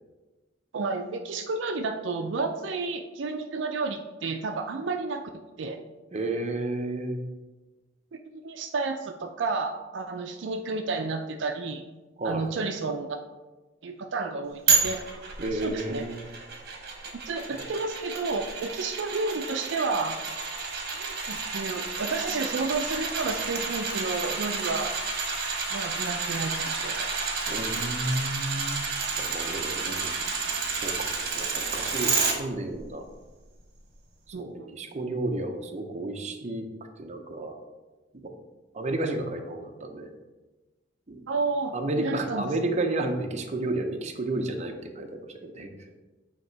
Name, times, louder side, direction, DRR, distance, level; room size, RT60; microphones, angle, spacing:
voice 1, 0.7-5.3 5.6-5.8 8.1-11.8 12.2-13.2 13.8-15.0 15.5-16.1 17.3-20.2 20.7-24.9 25.7-27.2 34.3-34.7 41.3-42.5, right 3 dB, 75° right, 5 dB, 0.4 m, -31 dB
voice 2, 6.1-7.2 12.2-12.5 15.4-16.2 17.5-17.6 27.5-28.8 29.2-30.1 30.8-31.1 31.4-33.0 34.4-36.6 37.0-37.5 38.1-38.3 38.7-40.1 41.1-41.2 41.7-45.7, right 2 dB, 40° right, 4 dB, 0.7 m, -31 dB
sound 1, 14.7-32.3 32.8-32.9, right 4 dB, 55° right, 1.1 m, -30 dB
8.0 x 2.9 x 4.5 m, 1.2 s
head